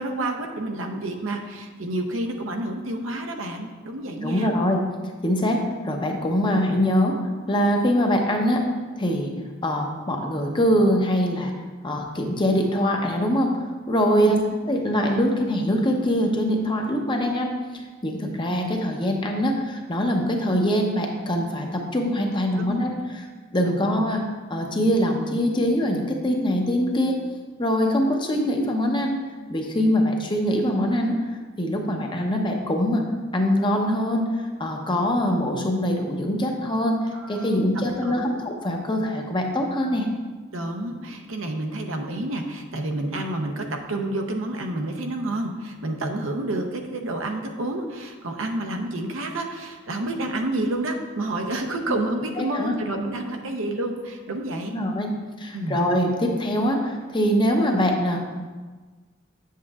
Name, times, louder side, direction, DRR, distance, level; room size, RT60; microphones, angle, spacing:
voice 1, 0.0-4.5 14.2-14.4 22.6-22.8 23.6-23.9 37.1-38.4 40.5-54.7 55.5-55.8, right 1 dB, 80° right, 4 dB, 0.7 m, -29 dB
voice 2, 4.2-4.8 5.2-7.2 7.5-8.6 9.0-9.3 9.6-11.5 11.8-14.4 14.7-22.9 23.5-24.2 24.5-27.2 27.6-29.1 29.5-31.3 31.6-33.1 33.3-37.0 37.3-40.1 51.9-52.0 52.4-52.7 54.7-58.2, equal, 25° left, 2 dB, 0.7 m, -23 dB
7.4 x 7.4 x 2.4 m, 1.3 s
head